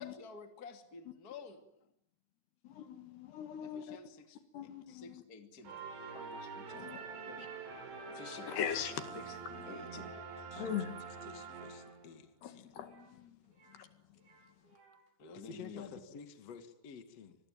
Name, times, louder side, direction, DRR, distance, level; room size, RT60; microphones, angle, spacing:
voice 1, 0.0-1.7 3.6-4.4 4.9-5.8 6.1-7.5 8.1-8.6 9.1-9.4 9.7-10.2 15.2-16.0, left 4 dB, 25° left, 2.4 m, -50 dB
voice 2, 2.6-4.0 4.5-5.2 6.8-7.0 7.4-7.5 8.5-9.2 10.6-11.2 12.4-13.4 13.7-13.9, left 8 dB, 75° left, 4.0 m, -41 dB
sound 1, 5.7-12.2, right 5 dB, 85° right, 7.1 m, -46 dB
Cat piano, 7.3-7.6 8.0-8.3 9.1-9.5 9.8-10.2 10.4-12.0 12.7-13.9 14.1-15.1, right 4 dB, 65° right, 8.8 m, -65 dB
voice 3, 10.5-10.8 11.2-12.7 15.3-17.4, left 7 dB, 45° left, 2.7 m, -51 dB
26.5 x 21.5 x 9.2 m
omnidirectional pair, 4.8 m